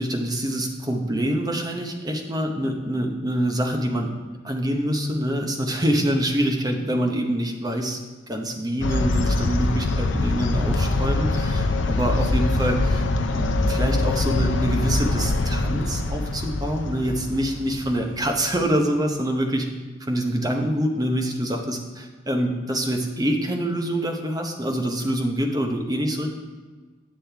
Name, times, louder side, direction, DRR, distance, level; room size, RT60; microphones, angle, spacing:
voice 1, 0.0-4.1 4.4-8.0 8.3-13.0 13.3-19.7 20.0-26.3, equal, 20° right, 2 dB, 0.8 m, -25 dB
sound 1, 8.8-18.6, left 2 dB, 80° left, 0.5 m, -24 dB
8.3 x 7.5 x 3.4 m, 1.3 s
head